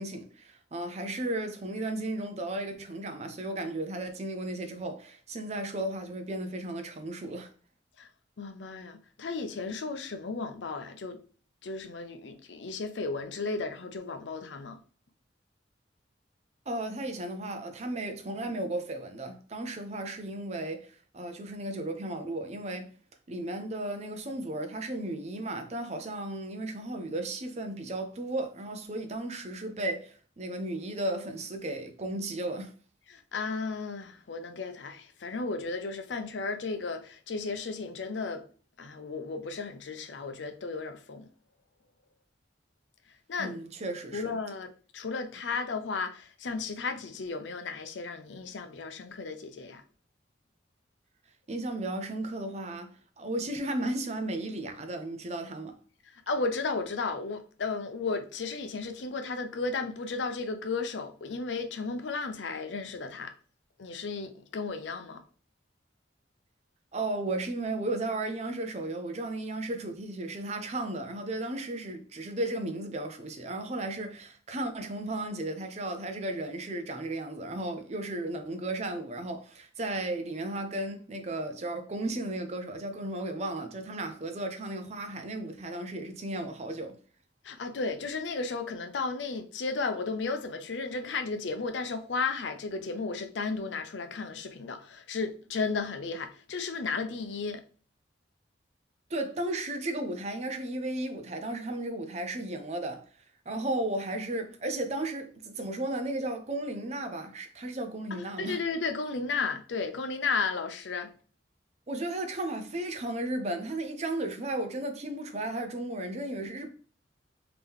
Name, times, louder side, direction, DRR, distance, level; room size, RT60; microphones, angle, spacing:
voice 1, 0.0-7.5 16.7-22.9 23.3-32.7 43.4-44.4 51.5-55.8 66.9-87.0 99.1-103.1 103.5-108.6 111.9-116.7, right 1 dB, 35° right, 0.6 m, -34 dB
voice 2, 8.4-11.2 11.6-14.8 33.1-38.4 38.8-41.3 43.3-43.6 44.1-44.7 44.9-49.8 56.1-63.3 63.8-65.2 87.4-97.6 108.1-111.1, left 4 dB, 85° left, 0.6 m, -34 dB
3.6 x 2.9 x 3.5 m
head